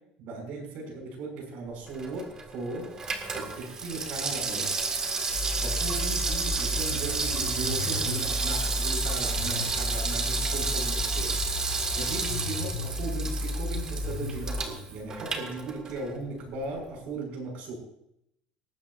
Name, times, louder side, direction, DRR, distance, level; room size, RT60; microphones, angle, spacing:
voice 1, 0.2-2.9 3.3-4.7 5.6-11.3 11.9-17.8, right 3 dB, 60° right, 1 dB, 6.5 m, -37 dB
Water tap faucet / Sink (filling or washing), 1.9-16.2 16.5-16.6, right 4 dB, 25° right, 2.0 m, -31 dB
sound 1, 5.3-14.6, left 2 dB, 80° left, 5.2 m, -33 dB
19.0 x 15.0 x 2.6 m, 0.77 s
cardioid pair, 140°, 3 cm